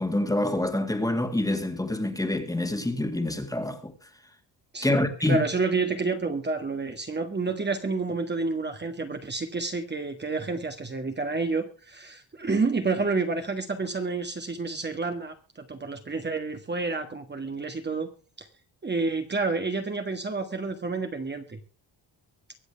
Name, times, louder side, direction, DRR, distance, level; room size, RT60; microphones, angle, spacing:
voice 1, 0.0-3.9 4.8-5.4, left 1 dB, 10° left, 2.1 m, -26 dB
voice 2, 4.7-18.1 18.4-18.5 18.8-21.6, right 3 dB, 25° right, 1.6 m, -29 dB
24.0 x 8.0 x 3.4 m
cardioid pair, 135°, 44 cm